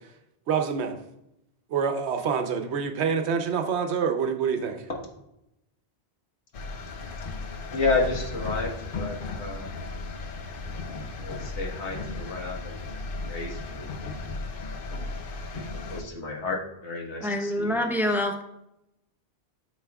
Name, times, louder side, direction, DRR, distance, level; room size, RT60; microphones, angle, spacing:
voice 1, 0.5-1.0 1.7-4.8, right 6 dB, 80° right, 7 dB, 1.0 m, -26 dB
sound 1, 6.5-16.0, left 3 dB, 60° left, 0.8 m, -35 dB
voice 2, 7.7-9.7 11.2-12.8 13.3-13.9 15.5-17.7, left 3 dB, 85° left, -1 dB, 1.7 m, -31 dB
voice 3, 17.2-18.4, left 1 dB, 5° right, 4 dB, 0.4 m, -26 dB
9.1 x 6.0 x 2.3 m, 0.86 s
omnidirectional pair, 1.1 m